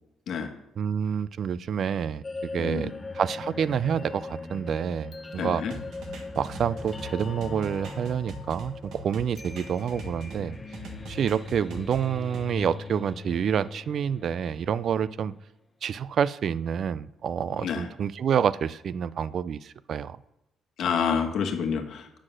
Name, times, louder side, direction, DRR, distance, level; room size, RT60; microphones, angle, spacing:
voice 1, 0.8-2.2 2.5-5.6 6.4-10.6 11.1-15.3 15.8-20.2, right 8 dB, 60° right, 18 dB, 0.4 m, -28 dB
sound 1, 2.2-15.2, left 3 dB, 25° left, 0.8 m, -40 dB
voice 2, 2.6-2.9 5.4-5.7 17.6-17.9 20.8-22.2, left 6 dB, 70° left, 5 dB, 1.2 m, -28 dB
sound 2, 5.7-10.4 10.7-12.5, right 1 dB, 80° right, 1.5 m, -42 dB
7.6 x 6.3 x 6.1 m, 0.88 s
cardioid pair, 90°, 0 cm